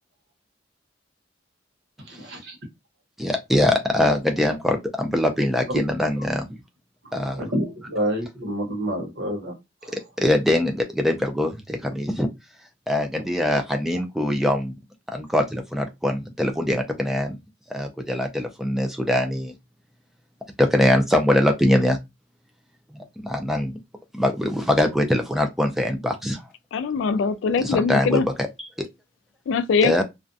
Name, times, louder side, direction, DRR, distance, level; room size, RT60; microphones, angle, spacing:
voice 1, 2.0-2.6 7.0-9.5 9.8-10.0, equal, 60° right, 0.9 m, -29 dB
voice 2, 3.2-6.6 7.1-7.4 9.9-12.3 12.9-14.8 15.1-17.4 17.7-19.5 20.6-22.0 22.9-23.8 24.1-26.4 27.6-28.5 28.8-28.9 29.8-30.0, left 1 dB, ahead, 0.3 m, -23 dB
voice 3, 26.7-28.3 29.5-30.0, left 5 dB, 80° left, 0.3 m, -22 dB
2.4 x 2.1 x 2.5 m
head